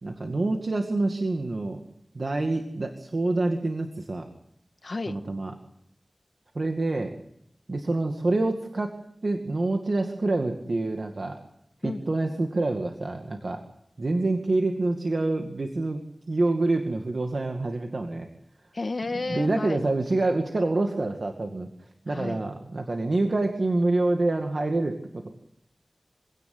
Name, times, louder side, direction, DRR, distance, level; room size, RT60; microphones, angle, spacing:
voice 1, 0.0-1.8 2.1-4.3 5.1-5.5 6.5-7.1 7.7-8.9 9.2-11.4 11.8-13.6 14.0-16.0 16.3-18.3 19.3-21.7 22.1-25.3, right 2 dB, 65° right, 4 dB, 2.2 m, -26 dB
voice 2, 4.8-5.2 11.8-12.0 18.7-19.8 22.1-22.4, left 3 dB, 65° left, 8 dB, 1.6 m, -32 dB
25.5 x 17.0 x 8.0 m, 0.74 s
wide cardioid pair, 60°, 0 cm